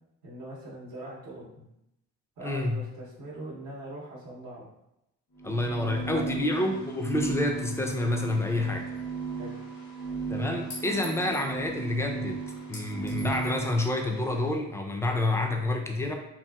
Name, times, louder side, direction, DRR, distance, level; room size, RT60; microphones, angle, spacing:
voice 1, 0.2-1.7 2.4-4.7 5.7-6.4 9.4-9.6, right 1 dB, 75° right, -4 dB, 0.8 m, -42 dB
voice 2, 2.4-2.8 5.4-8.9 10.3-12.4 12.7-16.1, left 2 dB, 10° left, 2 dB, 0.4 m, -28 dB
sound 1, 5.4-14.5, right 5 dB, 70° left, 0.8 m, -36 dB
Chink clink, 9.0-9.1 10.7-11.5 12.7-13.6, left 3 dB, 90° left, 1.3 m, -44 dB
2.8 x 2.5 x 2.2 m, 0.84 s
cardioid pair, 90°, 30 cm